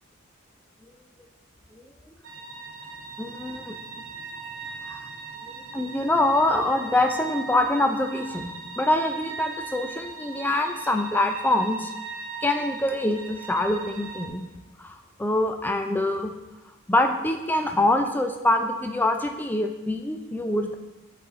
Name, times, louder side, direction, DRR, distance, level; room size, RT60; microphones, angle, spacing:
sound 1, 2.2-14.3, right 4 dB, 65° right, 0.8 m, -39 dB
voice 1, 3.2-3.8 4.9-5.0 5.4-11.9 12.4-14.5 14.8-16.3 16.9-20.7, left 1 dB, 10° left, 4 dB, 0.3 m, -25 dB
7.6 x 4.1 x 3.8 m, 1.1 s
head